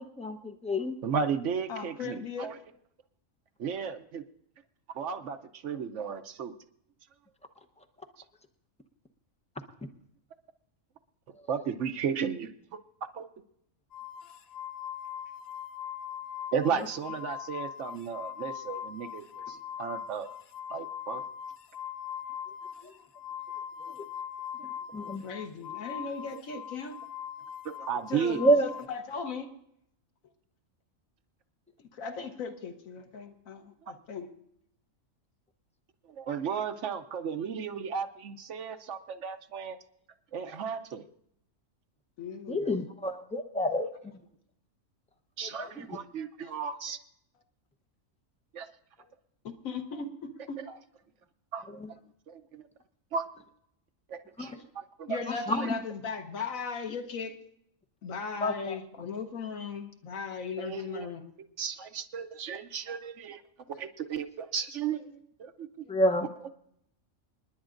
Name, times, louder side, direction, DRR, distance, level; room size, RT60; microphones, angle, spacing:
voice 1, 0.0-0.9 22.8-22.9 23.8-23.9 24.9-25.2 28.4-28.7 42.5-43.9 45.6-45.7 54.4-54.6 55.3-55.6 58.4-58.8 65.9-66.3, equal, 5° left, 4 dB, 0.6 m, -28 dB
voice 2, 1.0-2.6 3.6-4.2 4.9-6.5 11.5-12.5 13.2-13.3 16.5-20.3 20.7-21.2 26.3-26.4 27.6-28.5 33.8-33.9 36.1-39.8 40.3-41.0 45.4-47.0 48.5-48.7 50.6-50.8 51.5-51.8 52.3-52.7 53.1-53.3 54.1-55.7 60.6-61.1 61.6-63.4 63.8-65.1 65.4-65.7 66.2-66.5, right 7 dB, 65° right, 9 dB, 1.0 m, -34 dB
voice 3, 1.7-2.5 25.2-27.0 28.1-29.5 31.9-34.3 42.2-42.7 46.4-46.5 49.4-50.6 54.6-54.7 55.1-57.4 58.0-61.3 63.7-63.8 65.1-65.2 65.8-66.0, left 5 dB, 85° left, 6 dB, 1.5 m, -38 dB
sound 1, 13.9-28.9, left 9 dB, 55° left, 0.9 m, -41 dB
28.0 x 10.5 x 2.5 m, 0.73 s
omnidirectional pair, 1.4 m